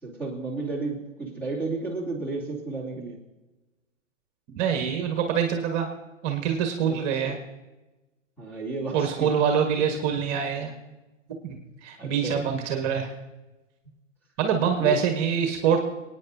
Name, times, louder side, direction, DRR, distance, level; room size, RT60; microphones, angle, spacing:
voice 1, 0.0-3.2 7.2-7.3 8.4-9.3 12.0-12.5 14.8-15.0, right 3 dB, 5° left, -4 dB, 2.9 m, -32 dB
voice 2, 4.6-5.9 6.2-7.4 8.9-10.7 11.4-13.1 14.4-15.8, right 7 dB, 35° right, 4 dB, 1.6 m, -25 dB
28.5 x 9.6 x 2.8 m, 1.1 s
hypercardioid pair, 130°, 39 cm